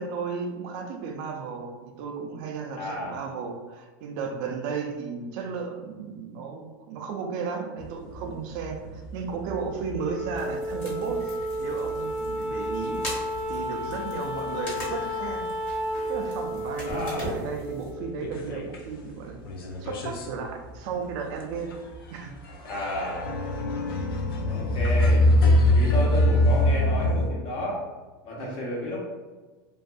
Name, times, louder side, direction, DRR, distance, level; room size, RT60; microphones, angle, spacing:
voice 1, 0.0-11.3 11.6-13.0 13.5-15.4 16.1-19.4 19.8-21.7 22.1-22.5 25.8-26.1 28.4-28.7, right 5 dB, 60° right, 3 dB, 0.5 m, -34 dB
voice 2, 2.8-3.2 16.8-17.3 22.6-23.3 24.5-25.3 25.6-27.8 28.2-29.0, left 1 dB, 50° left, -4 dB, 1.1 m, -32 dB
sound 1, 7.8-14.4 14.8-15.9 16.3-16.4 16.7-16.8 17.1-18.9 19.3-27.3, left 1 dB, 80° left, 0.5 m, -25 dB
Wind instrument woodwind instrument, 9.9-18.5, equal, 10° right, 0.8 m, -32 dB
sound 2, 10.4-17.9, equal, 20° left, 1.2 m, -42 dB
2.6 x 2.4 x 2.3 m, 1.3 s
supercardioid pair, 120°, 12 cm